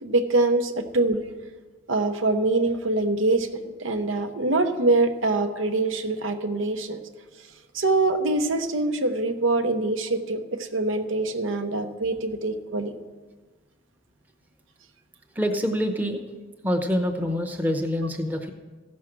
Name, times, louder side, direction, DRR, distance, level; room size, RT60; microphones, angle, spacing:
voice 1, 0.0-1.2 1.9-7.0 7.7-12.9, right 2 dB, 80° right, 7 dB, 0.9 m, -24 dB
voice 2, 15.4-16.2 16.6-18.5, equal, 10° right, 4 dB, 0.8 m, -25 dB
15.5 x 6.3 x 6.0 m, 1.3 s
head